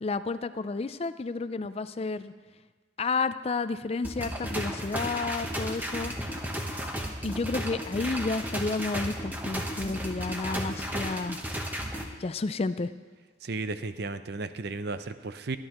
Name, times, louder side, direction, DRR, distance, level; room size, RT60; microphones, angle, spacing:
voice 1, 0.0-2.3 3.0-6.1 7.2-11.4 12.2-12.9, left 3 dB, 35° left, 12 dB, 0.4 m, -31 dB
sound 1, 4.0-12.0, equal, 10° right, 1.0 m, -34 dB
voice 2, 13.4-15.6, right 3 dB, 60° right, 11 dB, 0.6 m, -34 dB
19.0 x 11.0 x 3.0 m, 1.4 s
head